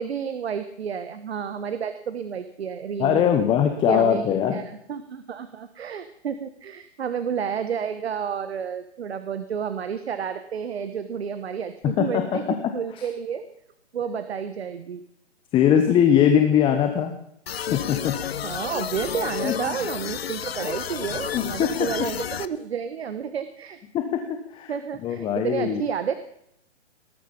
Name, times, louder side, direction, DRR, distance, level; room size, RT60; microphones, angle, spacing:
voice 1, 0.0-3.4 3.9-12.4 12.7-13.4 13.9-15.0 18.4-23.8 24.7-26.1, right 7 dB, 65° right, 11 dB, 1.3 m, -30 dB
voice 2, 3.0-4.6 12.0-12.4 15.5-17.1 17.7-18.1 19.4-19.8 21.3-21.9 23.9-24.2 24.5-24.7 25.0-25.8, left 9 dB, 15° left, 6 dB, 1.1 m, -21 dB
sound 1, 17.5-22.5, left 9 dB, 60° left, 0.9 m, -31 dB
19.5 x 12.0 x 5.4 m, 0.75 s
figure-of-eight pair, 135°, 34 cm